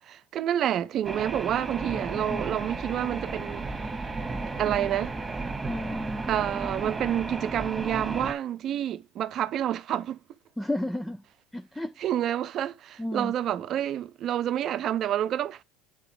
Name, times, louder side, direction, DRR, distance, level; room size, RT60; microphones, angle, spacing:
voice 1, 0.1-3.6 4.6-5.2 6.3-10.2 12.0-15.6, right 11 dB, 50° right, 0.7 m, -28 dB
sound 1, 1.0-8.3, right 3 dB, 15° right, 1.9 m, -33 dB
voice 2, 5.6-6.3 10.6-11.2 11.5-11.9 13.0-13.3, left 1 dB, 5° left, 0.5 m, -32 dB
8.0 x 3.8 x 5.0 m
supercardioid pair, 100°, 0 cm